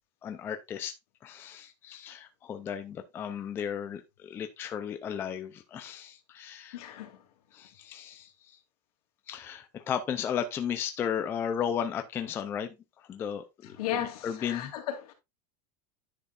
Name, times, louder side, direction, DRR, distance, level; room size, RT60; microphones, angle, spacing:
voice 1, 0.2-0.9 1.2-6.8 7.5-8.6 9.3-14.7, left 8 dB, 10° left, 0.4 m, -35 dB
voice 2, 6.7-7.2 13.8-15.1, left 11 dB, 70° left, 2.5 m, -35 dB
10.0 x 6.4 x 2.4 m
supercardioid pair, 180°, 20 cm